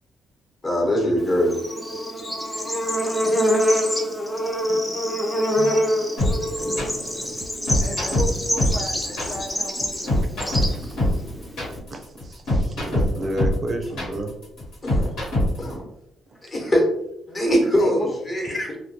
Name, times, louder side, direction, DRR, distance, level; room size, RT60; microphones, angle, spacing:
voice 1, 0.6-1.6 14.8-15.1 15.6-15.8 16.4-16.9 17.3-18.7, equal, 35° left, -1 dB, 1.0 m, -22 dB
Bird / Insect, 1.2-11.8, equal, 10° left, 0.5 m, -25 dB
sound 1, 6.2-15.7, left 1 dB, 75° left, 1.3 m, -23 dB
voice 2, 6.5-7.4 10.6-10.8 11.1-11.2 11.9-14.4, right 1 dB, 45° right, 4 dB, 0.4 m, -32 dB
voice 3, 7.8-10.6 17.8-18.1, left 1 dB, 55° left, -1 dB, 0.6 m, -32 dB
2.2 x 2.2 x 2.8 m, 0.79 s
cardioid pair, 90°, 0 cm